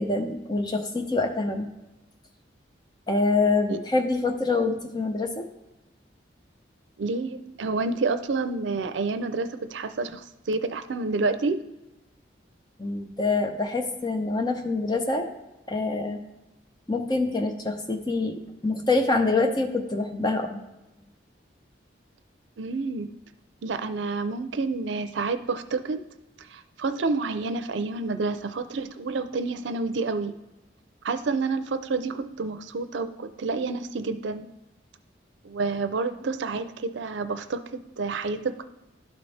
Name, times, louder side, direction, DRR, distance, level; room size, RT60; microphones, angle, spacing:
voice 1, 0.0-1.7 3.1-5.4 12.8-15.3 15.7-16.2 16.9-20.6, left 3 dB, 20° left, 4 dB, 0.6 m, -25 dB
voice 2, 7.0-11.6 22.6-23.1 23.6-26.1 26.4-30.3 31.0-34.5 35.4-38.6, right 3 dB, 80° right, 10 dB, 0.5 m, -29 dB
12.0 x 4.1 x 3.3 m, 0.99 s
head